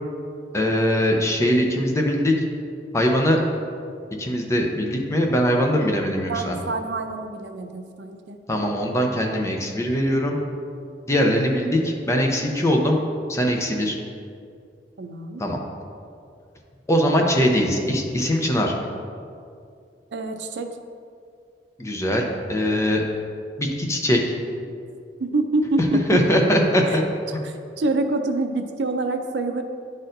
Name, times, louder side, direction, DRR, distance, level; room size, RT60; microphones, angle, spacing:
voice 1, 0.5-2.4 2.9-3.4 4.2-6.6 8.5-10.4 11.1-13.0 13.3-14.0 15.4-15.6 16.9-18.7 21.8-23.0 23.6-24.2 26.1-27.0, equal, 15° left, 1 dB, 0.7 m, -21 dB
voice 2, 6.3-8.4 15.0-15.4 20.1-20.7 25.2-26.2 26.9-27.0 27.4-29.6, right 2 dB, 80° right, 6 dB, 0.5 m, -26 dB
10.0 x 4.2 x 2.6 m, 2.3 s
head